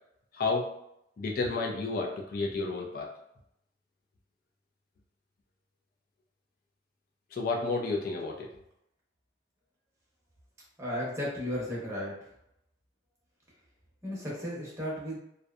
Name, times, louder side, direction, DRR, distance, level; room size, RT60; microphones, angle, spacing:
voice 1, 0.3-0.7 1.2-3.1 7.3-8.5, left 3 dB, 50° left, 0 dB, 0.3 m, -31 dB
voice 2, 10.8-12.1 14.0-15.2, equal, 15° right, -6 dB, 0.7 m, -34 dB
2.6 x 2.1 x 2.3 m, 0.78 s
head